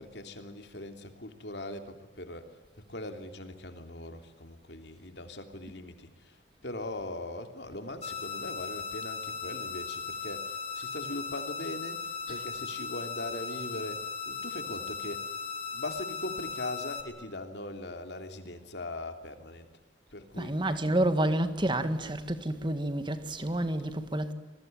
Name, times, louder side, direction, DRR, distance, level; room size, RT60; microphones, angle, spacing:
voice 1, 0.0-6.4 6.6-15.3 15.7-19.7 20.1-20.5, left 1 dB, 65° left, 3.1 m, -40 dB
sound 1, 8.0-17.0, left 5 dB, 35° left, 3.2 m, -37 dB
voice 2, 20.4-24.3, right 1 dB, 25° right, 1.8 m, -29 dB
27.5 x 22.0 x 9.2 m
head